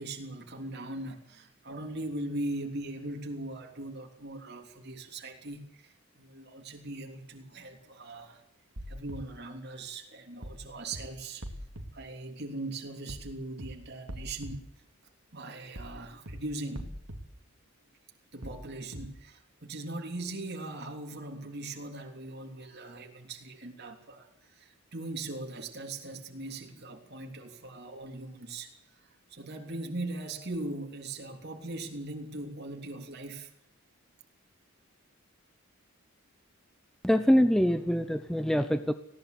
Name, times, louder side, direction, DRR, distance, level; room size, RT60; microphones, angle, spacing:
voice 1, 0.0-8.4 8.9-11.5 11.9-14.7 15.3-16.9 18.3-33.5, right 2 dB, 50° right, 2 dB, 3.2 m, -40 dB
sound 1, 8.8-9.2 10.4-10.6 10.9-11.0 11.4-11.9 13.1-13.3 13.6-13.7 14.1-14.5 15.8-16.0 16.3-16.4 16.7-17.2 18.4-18.6 18.9-19.0, equal, 85° right, 2.7 m, -41 dB
voice 2, 37.0-38.9, equal, ahead, 10 dB, 0.7 m, -24 dB
19.0 x 17.5 x 8.0 m, 0.77 s
head